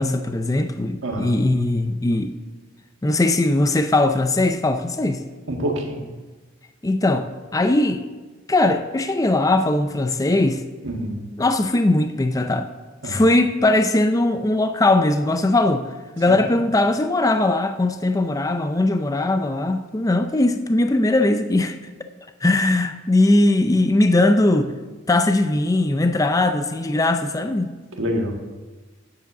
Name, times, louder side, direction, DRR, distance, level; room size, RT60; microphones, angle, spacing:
voice 1, 0.0-2.3 3.0-5.2 6.8-7.3 7.5-8.1 8.5-10.6 11.4-12.7 13.0-15.9 16.2-21.8 22.4-24.7 25.1-27.8, left 2 dB, 20° left, 0.4 m, -20 dB
voice 2, 1.0-1.4 5.5-6.0 10.8-11.2 13.0-13.2 16.3-16.4 28.0-28.3, right 1 dB, 85° right, 1.6 m, -26 dB
8.4 x 7.4 x 6.7 m
head